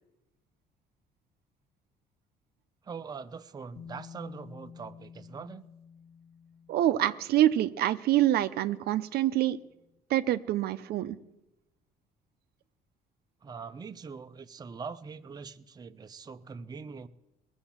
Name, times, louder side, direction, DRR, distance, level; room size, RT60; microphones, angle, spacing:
voice 1, 2.8-5.6 13.4-17.1, right 5 dB, 25° right, 9 dB, 0.6 m, -42 dB
Bass guitar, 3.8-7.7 8.8-8.9, left 7 dB, 65° left, 1.3 m, -50 dB
voice 2, 6.7-9.6 10.1-11.2, right 13 dB, 70° right, 12 dB, 0.6 m, -26 dB
20.0 x 7.2 x 7.2 m, 0.93 s
cardioid pair, 110°, 17 cm